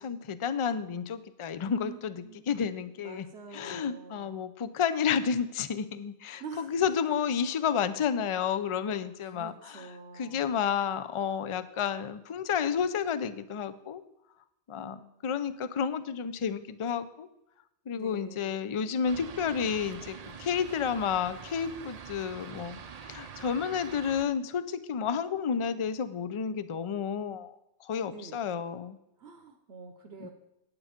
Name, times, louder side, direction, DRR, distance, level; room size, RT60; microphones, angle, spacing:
voice 1, 0.0-3.3 3.5-9.9 10.1-14.0 14.7-17.3 17.9-22.8 23.1-27.5 27.8-29.0 30.2-30.3, left 7 dB, 40° left, 12 dB, 0.4 m, -31 dB
voice 2, 1.6-4.4 6.4-6.7 9.2-10.5 14.8-15.1 18.0-18.5 28.1-28.4 29.2-30.3, right 5 dB, 85° right, 4 dB, 1.2 m, -46 dB
Fixed-wing aircraft airplane, 19.1-24.2, right 6 dB, 45° right, 0.6 m, -45 dB
8.9 x 8.9 x 5.1 m, 0.86 s
omnidirectional pair, 1.1 m